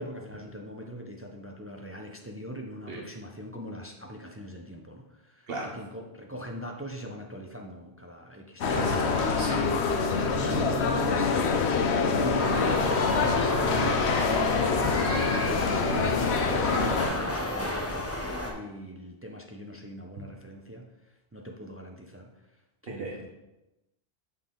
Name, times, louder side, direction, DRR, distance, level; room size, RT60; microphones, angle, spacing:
voice 1, 0.0-8.8 10.2-11.3 12.2-18.1 18.4-22.3 22.8-23.3, equal, 20° right, 2 dB, 0.3 m, -40 dB
sound 1, 8.6-17.1, left 5 dB, 90° left, 0.9 m, -26 dB
voice 2, 8.7-10.2 23.0-23.1, right 2 dB, 65° right, -1 dB, 1.1 m, -37 dB
sound 2, 12.4-18.5, left 1 dB, 15° left, 0.7 m, -32 dB
6.9 x 4.0 x 3.7 m, 0.98 s
omnidirectional pair, 1.1 m